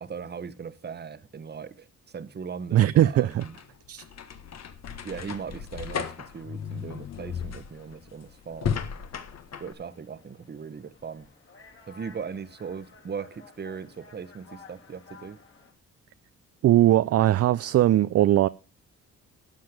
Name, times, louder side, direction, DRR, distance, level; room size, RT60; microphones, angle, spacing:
voice 1, 0.0-3.6 5.0-8.8 9.6-11.3 11.9-15.4, right 6 dB, 35° right, 1.1 m, -39 dB
voice 2, 2.7-3.4 3.9-4.0 16.6-18.5, right 13 dB, 55° right, 0.5 m, -20 dB
sound 1, 3.2-9.7, left 7 dB, 60° left, 1.6 m, -35 dB
sound 2, 6.0-15.7, left 4 dB, 45° left, 3.2 m, -55 dB
12.0 x 7.5 x 5.0 m
cardioid pair, 90°, 30 cm